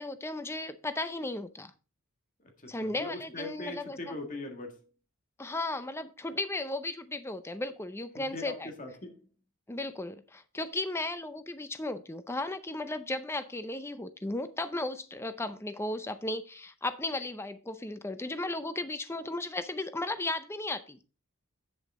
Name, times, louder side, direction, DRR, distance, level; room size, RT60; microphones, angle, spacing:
voice 1, 0.0-1.7 2.7-4.2 5.4-8.7 9.7-21.0, left 2 dB, 10° left, 0.5 m, -35 dB
voice 2, 2.6-4.8 8.2-9.2, left 2 dB, 35° left, 1.7 m, -41 dB
8.5 x 7.7 x 3.6 m
head